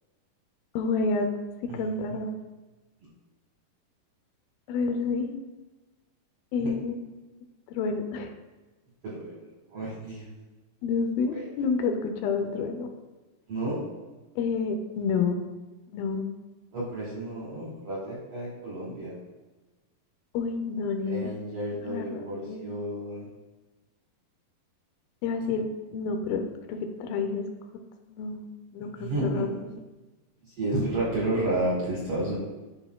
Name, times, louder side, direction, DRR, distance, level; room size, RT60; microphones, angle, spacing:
voice 1, 0.7-1.3 1.6-2.3 4.7-5.4 6.5-7.0 7.7-8.3 10.8-12.9 14.4-15.4 15.9-16.3 20.3-21.3 21.9-22.7 25.2-26.4 26.7-27.5 27.7-27.8 28.1-29.7, left 4 dB, 80° left, 5 dB, 2.4 m, -29 dB
voice 2, 9.7-10.3 11.3-11.5 13.5-13.9 16.7-19.1 21.1-23.3 25.4-25.6 29.0-29.6 30.4-32.4, right 1 dB, 65° right, -5 dB, 1.5 m, -31 dB
12.0 x 4.3 x 2.2 m, 1.2 s
omnidirectional pair, 4.3 m